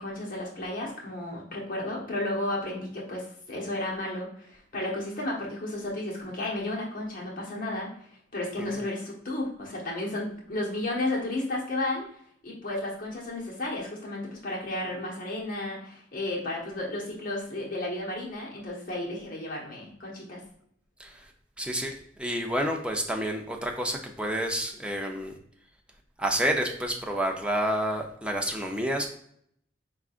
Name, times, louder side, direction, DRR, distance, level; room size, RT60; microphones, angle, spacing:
voice 1, 0.0-7.9 8.3-12.1 12.4-20.4, left 1 dB, 50° left, -3 dB, 1.2 m, -33 dB
voice 2, 21.6-25.3 26.2-29.1, equal, 5° right, 1 dB, 0.5 m, -29 dB
4.7 x 3.6 x 2.4 m, 0.67 s
head